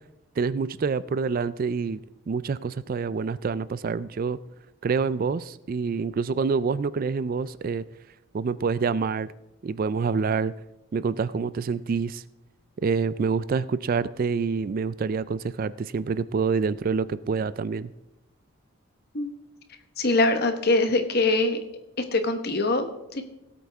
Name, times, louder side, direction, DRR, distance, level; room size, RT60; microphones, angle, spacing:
voice 1, 0.4-2.0 2.3-4.4 4.8-7.8 8.3-9.3 9.6-10.5 10.9-12.2 12.8-17.9, right 5 dB, 45° right, 17 dB, 0.3 m, -27 dB
voice 2, 20.0-21.6 22.1-23.2, left 2 dB, 50° left, 8 dB, 1.2 m, -23 dB
18.0 x 8.4 x 3.5 m, 0.93 s
head